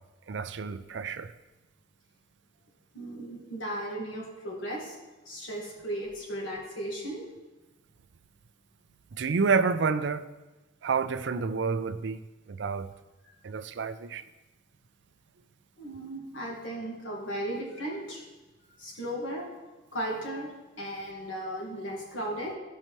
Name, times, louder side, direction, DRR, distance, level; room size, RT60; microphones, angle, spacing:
voice 1, 0.3-1.3 9.2-10.3 10.8-12.2 12.5-12.9 13.4-14.2, right 5 dB, 60° right, 0.4 m, -29 dB
voice 2, 2.9-5.0 5.3-7.3 15.8-18.2 18.8-19.5 19.9-22.6, right 1 dB, 70° left, 1.7 m, -36 dB
15.0 x 5.6 x 3.1 m
head